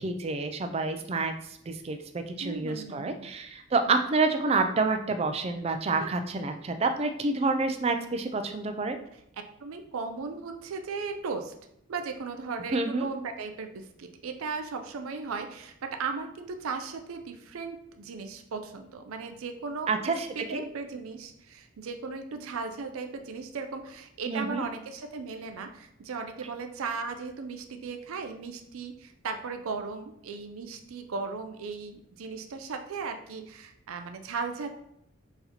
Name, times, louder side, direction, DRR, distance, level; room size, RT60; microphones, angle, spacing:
voice 1, 0.0-1.3 1.7-9.0 12.7-13.0 19.9-20.3 20.5-20.6 24.3-24.6, right 3 dB, 30° right, 7 dB, 0.3 m, -28 dB
voice 2, 2.4-3.3 6.0-6.2 9.1-11.5 11.9-34.7, right 4 dB, 85° right, 6 dB, 0.5 m, -37 dB
4.0 x 3.9 x 2.9 m, 0.76 s
head